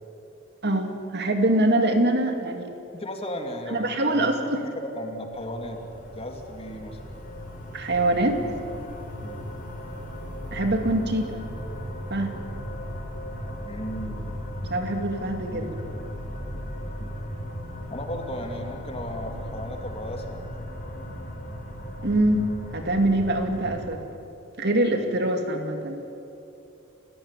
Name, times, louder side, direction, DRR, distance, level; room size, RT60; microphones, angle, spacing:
voice 1, 0.6-2.7 3.7-4.6 7.7-8.4 10.5-11.4 12.1-12.3 14.7-15.7 22.0-24.0 24.6-26.0, right 1 dB, 55° right, 5 dB, 2.4 m, -24 dB
voice 2, 2.9-4.3 4.9-5.8 6.1-7.0 9.2-9.4 13.7-14.3 15.5-15.8 16.9-17.2 17.9-20.3, left 1 dB, 30° left, 4 dB, 2.7 m, -35 dB
sound 1, 5.3-23.9, equal, 45° left, 4.7 m, -37 dB
29.5 x 15.5 x 9.9 m, 2.9 s
head